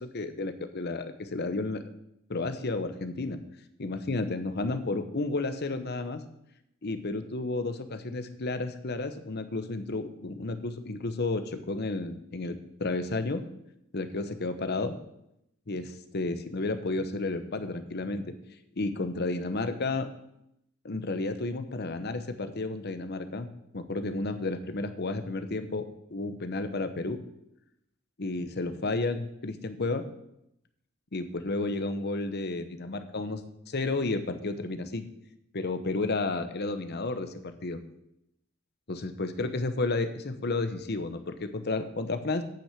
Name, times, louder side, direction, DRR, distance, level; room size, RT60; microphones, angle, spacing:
voice 1, 0.0-1.8 2.3-3.4 3.8-6.2 6.8-13.4 13.9-15.0 15.7-18.3 18.8-20.1 20.8-25.8 26.1-27.2 28.2-30.1 31.1-35.0 35.5-37.3 37.6-37.8 38.9-42.4, left 2 dB, 50° left, 9 dB, 0.9 m, -32 dB
9.0 x 6.1 x 8.2 m, 0.81 s
head